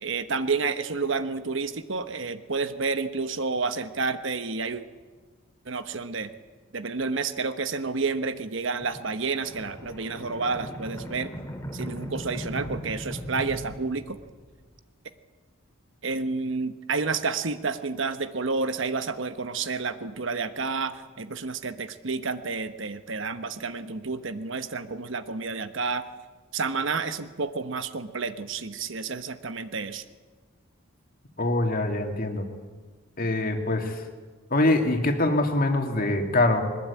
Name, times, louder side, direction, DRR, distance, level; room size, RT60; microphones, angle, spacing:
voice 1, 0.0-4.8 5.7-6.3 6.7-11.3 11.7-14.2 16.0-26.1 26.5-30.0, right 4 dB, 60° right, 10 dB, 1.1 m, -30 dB
sound 1, 8.8-14.6, equal, 10° left, 2.4 m, -38 dB
voice 2, 31.4-32.5 33.2-34.0 34.5-36.6, left 2 dB, 45° left, 4 dB, 2.5 m, -24 dB
21.5 x 20.0 x 8.5 m, 1.4 s
head